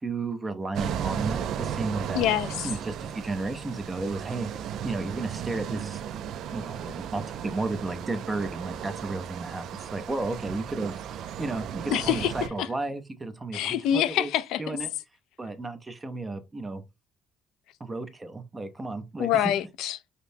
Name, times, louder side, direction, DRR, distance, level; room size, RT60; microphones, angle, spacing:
voice 1, 0.0-2.3 2.6-6.0 6.5-11.0 11.4-14.3 14.6-14.9 15.4-16.8 17.8-19.5, right 3 dB, 15° right, 0.5 m, -33 dB
sound 1, 0.7-12.5, right 9 dB, 65° right, 0.3 m, -35 dB
sound 2, 1.6-2.8 3.1-4.1 4.4-5.6 5.8-6.9, right 4 dB, 40° right, 1.0 m, -50 dB
voice 2, 2.1-2.7 11.9-12.3 12.6-12.7 13.5-14.8 19.2-20.0, left 11 dB, 80° left, 0.4 m, -26 dB
5.0 x 2.0 x 2.7 m
cardioid pair, 140°, 0 cm